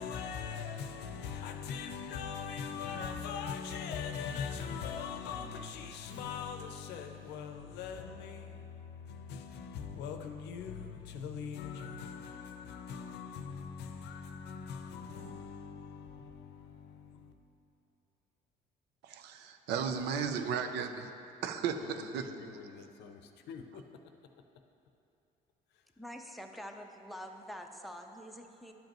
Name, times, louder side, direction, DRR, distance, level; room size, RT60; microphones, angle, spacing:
voice 1, 0.0-17.3 19.9-20.7 21.8-24.1, left 6 dB, 80° left, 0.6 m, -41 dB
voice 2, 19.0-21.1 21.4-22.3, right 6 dB, 85° right, 0.5 m, -35 dB
voice 3, 26.0-28.7, equal, ahead, 0.5 m, -46 dB
11.5 x 5.3 x 3.0 m
cardioid pair, 110°, 17 cm